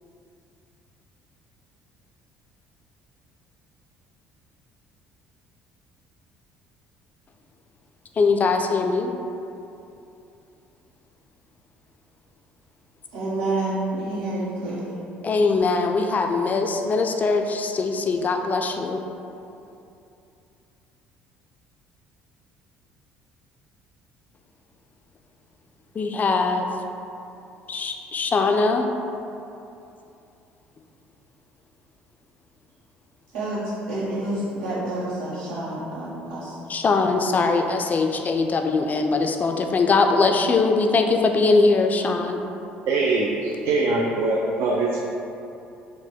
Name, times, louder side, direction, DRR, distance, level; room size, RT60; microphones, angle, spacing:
voice 1, 8.2-9.1 15.2-19.0 26.0-26.7 27.7-28.9 36.7-42.4, left 3 dB, 35° left, 4 dB, 0.3 m, -21 dB
voice 2, 13.1-15.0 33.3-36.5, right 2 dB, 75° right, -9 dB, 1.2 m, -28 dB
voice 3, 42.9-45.1, right 3 dB, 60° right, -2 dB, 0.4 m, -23 dB
3.8 x 2.1 x 4.2 m, 2.7 s
hypercardioid pair, 55°, 5 cm